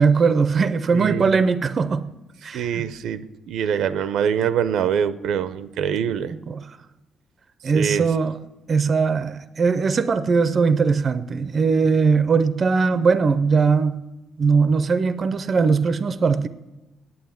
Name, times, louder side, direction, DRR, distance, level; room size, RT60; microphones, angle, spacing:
voice 1, 0.0-2.0 2.4-2.8 6.3-6.8 7.6-8.4 8.7-14.0 14.4-16.5, right 5 dB, 30° right, 0.5 m, -20 dB
voice 2, 0.9-1.4 2.5-6.3 7.7-8.0, right 8 dB, 80° right, 0.6 m, -24 dB
9.5 x 8.7 x 9.0 m
cardioid pair, 165°, 0 cm